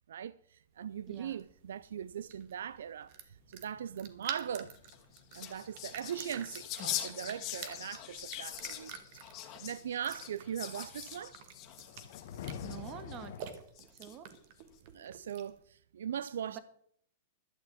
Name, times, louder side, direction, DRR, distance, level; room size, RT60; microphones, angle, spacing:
voice 1, 0.1-4.7 5.3-9.2 9.5-11.4 14.9-16.6, right 9 dB, 85° right, 0.4 m, -40 dB
sound 1, 0.8-15.6, right 8 dB, 50° right, 1.9 m, -50 dB
voice 2, 1.1-1.4 12.6-13.3 13.9-14.3 16.5-16.6, right 9 dB, 35° right, 1.6 m, -46 dB
sound 2, 3.4-13.4, left 8 dB, 60° left, 1.1 m, -51 dB
sound 3, 4.8-13.2 13.8-14.4, left 11 dB, 35° left, 2.2 m, -43 dB
12.0 x 6.5 x 8.5 m
hypercardioid pair, 135°, 0 cm